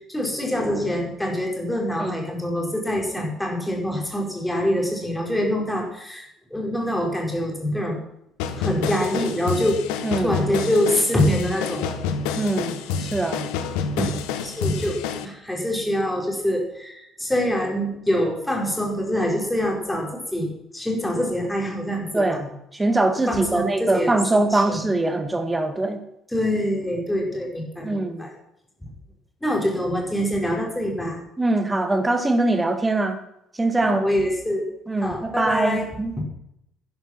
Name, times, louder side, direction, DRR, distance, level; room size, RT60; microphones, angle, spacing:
voice 1, 0.1-8.0 8.6-9.8 10.2-12.0 14.0-14.2 14.4-20.5 20.7-22.4 23.3-24.9 26.3-28.3 29.4-31.2 33.8-34.6 35.0-35.9 36.2-36.3, equal, 5° left, 0 dB, 4.9 m, -25 dB
sound 1, 8.4-15.2, left 6 dB, 65° left, 1.1 m, -28 dB
voice 2, 10.0-10.4 12.4-13.5 22.1-26.0 27.8-28.2 31.4-33.2 33.6-34.1 34.9-36.2, right 2 dB, 15° right, 8 dB, 2.1 m, -23 dB
12.5 x 10.5 x 6.0 m, 0.82 s
figure-of-eight pair, 50°, 0 cm